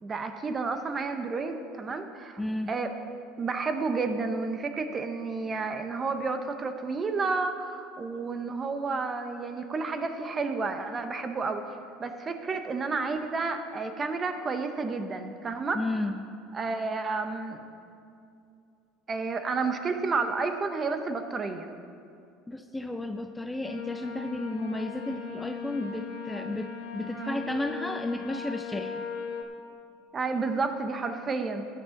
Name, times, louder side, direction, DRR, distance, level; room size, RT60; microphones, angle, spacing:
voice 1, 0.0-2.4 2.7-2.9 3.4-11.6 12.0-15.8 16.5-17.6 19.1-21.7 27.1-27.4 30.1-31.7, right 4 dB, 25° right, 7 dB, 0.9 m, -31 dB
voice 2, 2.4-2.7 15.7-16.1 22.5-29.1, left 1 dB, 10° left, 6 dB, 0.5 m, -33 dB
sound 1, 23.6-29.4, left 6 dB, 80° left, 1.2 m, -38 dB
14.0 x 9.9 x 3.9 m, 2.5 s
supercardioid pair, 110°, 0 cm